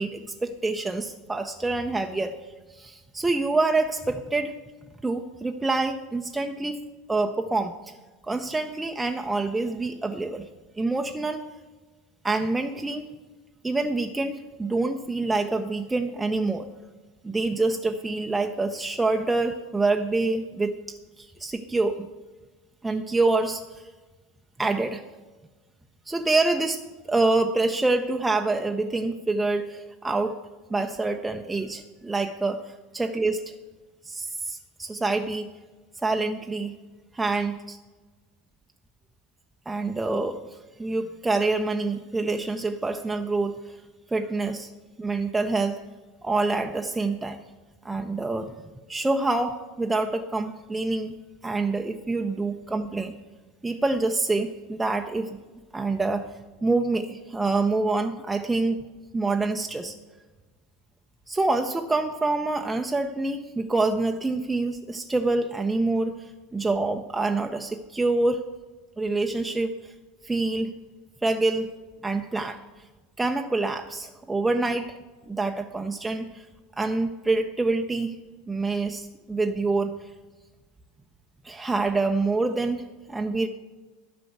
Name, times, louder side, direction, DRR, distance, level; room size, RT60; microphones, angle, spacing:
voice 1, 0.0-2.3 2.7-4.6 5.0-6.8 7.1-7.9 8.3-10.5 10.8-11.4 12.2-13.1 13.6-16.7 17.2-20.8 21.2-22.1 22.8-23.8 24.6-25.0 26.1-26.8 27.1-30.4 30.7-32.6 32.9-33.5 34.0-35.5 36.0-36.7 37.1-37.8 39.7-40.4 40.8-43.7 44.1-44.7 45.0-45.8 46.2-47.4 47.8-48.5 48.9-53.2 53.6-55.4 55.7-56.2 56.6-58.8 59.1-59.9 61.3-68.4 69.0-69.9 70.2-70.7 71.2-71.7 72.0-72.6 73.2-75.0 75.3-76.5 76.8-78.1 78.5-79.9 81.4-82.8 83.1-83.5, right 3 dB, 10° right, 4 dB, 0.6 m, -26 dB
11.5 x 6.0 x 7.9 m, 1.2 s
figure-of-eight pair, 75°, 0 cm